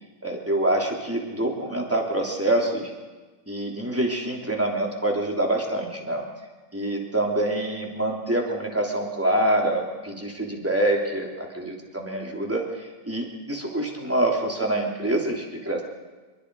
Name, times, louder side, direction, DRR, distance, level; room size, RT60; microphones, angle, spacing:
voice 1, 0.2-2.9 3.5-6.2 6.7-15.8, right 1 dB, 5° right, 0 dB, 3.0 m, -26 dB
25.0 x 23.0 x 4.9 m, 1.3 s
omnidirectional pair, 3.6 m